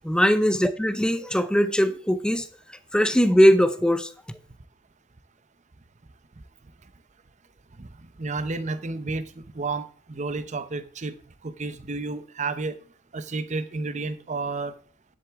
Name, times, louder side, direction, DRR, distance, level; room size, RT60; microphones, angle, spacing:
voice 1, 0.0-2.5 2.9-4.1, equal, 5° left, 0.6 m, -20 dB
voice 2, 8.2-11.1 11.4-12.8 13.1-14.7, right 3 dB, 35° right, 0.7 m, -31 dB
10.0 x 7.8 x 3.5 m
head